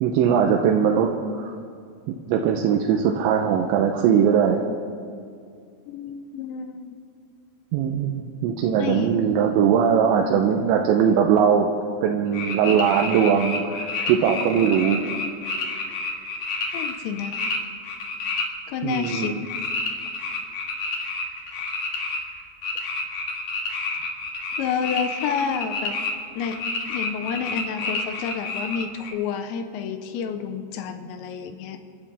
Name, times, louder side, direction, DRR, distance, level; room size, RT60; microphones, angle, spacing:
voice 1, 0.0-1.6 2.1-4.6 7.7-11.7 12.0-15.0 18.8-19.4, right 7 dB, 90° right, 2 dB, 3.2 m, -20 dB
voice 2, 5.9-7.0 8.8-9.2 16.7-17.4 18.7-19.4 24.6-26.0 26.4-26.6 26.9-31.8, left 7 dB, 90° left, 7 dB, 3.2 m, -29 dB
sound 1, 12.3-17.6 17.8-18.5 18.9-26.1 26.4-29.1, left 3 dB, 55° left, 2.3 m, -29 dB
29.0 x 12.5 x 3.5 m, 2.3 s
omnidirectional pair, 5.1 m